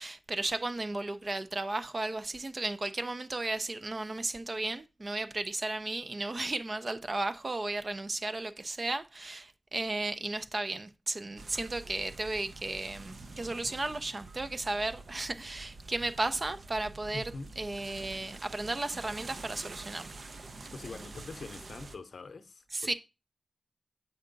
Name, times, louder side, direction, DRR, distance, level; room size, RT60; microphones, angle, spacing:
voice 1, 0.0-17.2 17.6-20.2 22.7-22.9, right 2 dB, 40° right, 0.4 m, -34 dB
sound 1, 11.4-22.0, right 3 dB, 70° right, 0.7 m, -47 dB
voice 2, 17.1-17.5 20.7-22.9, left 3 dB, 80° left, 0.6 m, -44 dB
7.9 x 4.5 x 3.8 m
wide cardioid pair, 105°, 0 cm